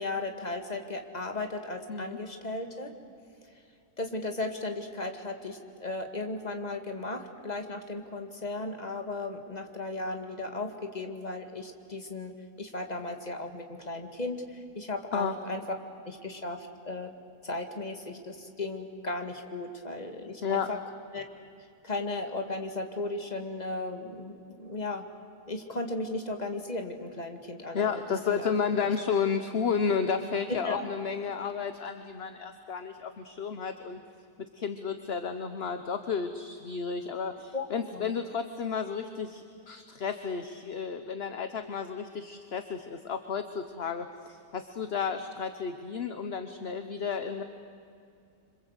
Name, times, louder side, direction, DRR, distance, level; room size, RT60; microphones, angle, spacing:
voice 1, 0.0-2.9 4.0-15.6 16.0-17.1 17.4-20.8 21.1-21.2 21.8-25.0 25.5-28.0 28.3-28.5 30.5-30.8 37.5-37.6 37.9-38.2, left 2 dB, 25° left, 4 dB, 2.2 m, -36 dB
voice 2, 27.7-34.0 34.4-47.4, left 6 dB, 45° left, 8 dB, 1.2 m, -32 dB
27.0 x 26.0 x 8.2 m, 2.5 s
omnidirectional pair, 1.7 m